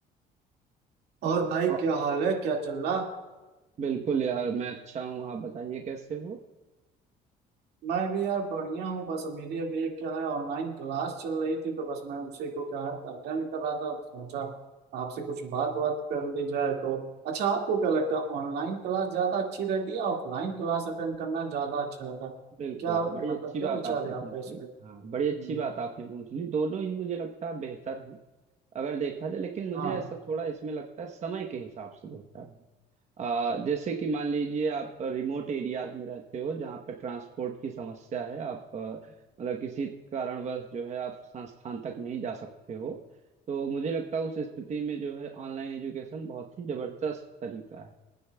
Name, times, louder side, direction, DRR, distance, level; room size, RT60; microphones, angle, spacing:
voice 1, 1.2-3.1 7.8-14.5 14.9-22.3 22.8-24.7 25.5-25.6 29.7-30.0, right 5 dB, 75° right, 1 dB, 2.0 m, -30 dB
voice 2, 3.8-6.4 22.6-28.2 28.7-32.6 33.2-39.0 39.4-43.0 43.5-47.9, right 5 dB, 45° right, 2 dB, 1.0 m, -33 dB
25.0 x 9.4 x 2.3 m, 1.2 s
cardioid pair, 110°, 17 cm